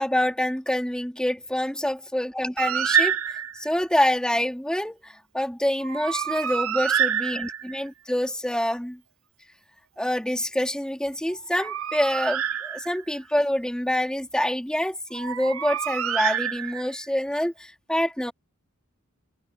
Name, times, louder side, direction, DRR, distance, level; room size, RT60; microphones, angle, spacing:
voice 1, 0.0-3.2 3.6-9.0 10.0-18.3, left 1 dB, 5° left, 3.0 m, -26 dB
Bird, 2.6-3.7 5.8-7.9 11.3-13.2 15.1-17.1, right 8 dB, 70° right, 0.8 m, -27 dB
head